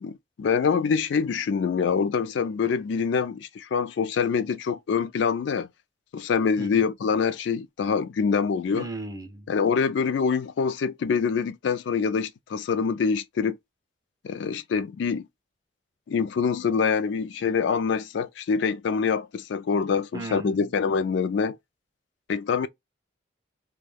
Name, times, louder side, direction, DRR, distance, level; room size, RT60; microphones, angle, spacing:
voice 1, 0.0-5.7 6.1-8.9 9.5-13.6 14.2-15.3 16.1-21.6 22.3-22.7, left 6 dB, 70° left, 0.3 m, -25 dB
voice 2, 8.8-9.5 20.1-20.7, right 2 dB, 20° right, 0.4 m, -36 dB
2.2 x 2.2 x 3.2 m
head